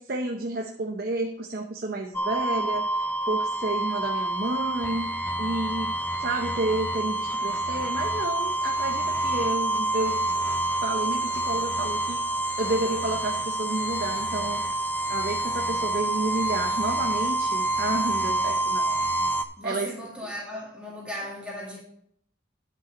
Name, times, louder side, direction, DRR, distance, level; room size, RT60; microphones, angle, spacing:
voice 1, 0.0-5.1 5.4-5.9 6.2-10.5 10.8-14.6 15.1-19.0 19.6-19.9, right 2 dB, 50° right, 0.8 m, -31 dB
sound 1, 2.1-19.4, right 2 dB, 10° left, 0.5 m, -27 dB
voice 2, 19.6-21.8, equal, 5° right, 2.0 m, -36 dB
10.5 x 5.7 x 5.1 m
head